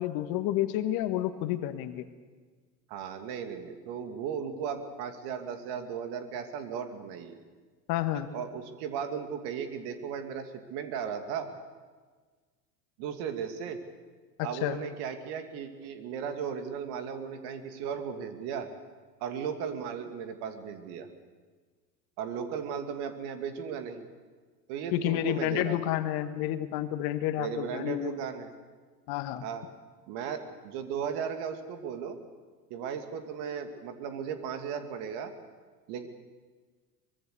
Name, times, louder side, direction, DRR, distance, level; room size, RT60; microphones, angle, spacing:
voice 1, 0.0-2.1 7.9-8.3 14.4-14.8 24.9-28.2 29.1-29.4, left 13 dB, 45° left, 9 dB, 1.6 m, -30 dB
voice 2, 2.9-7.4 8.1-11.5 13.0-13.8 14.4-18.7 19.2-21.1 22.2-24.1 24.7-25.9 27.4-28.5 29.4-29.6 30.1-32.2 32.7-35.3 35.9-36.1, right 7 dB, 50° right, 7 dB, 2.7 m, -36 dB
23.5 x 22.0 x 6.9 m, 1.5 s
hypercardioid pair, 85°, 50 cm